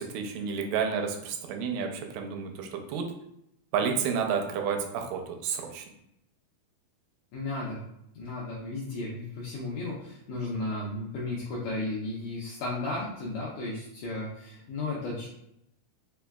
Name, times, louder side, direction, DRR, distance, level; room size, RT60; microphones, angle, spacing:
voice 1, 0.0-3.1 3.7-5.8, right 6 dB, 80° right, 3 dB, 2.1 m, -30 dB
voice 2, 7.3-7.8 8.1-15.3, left 2 dB, 85° left, -5 dB, 1.6 m, -34 dB
5.3 x 2.2 x 2.2 m, 0.79 s
omnidirectional pair, 3.8 m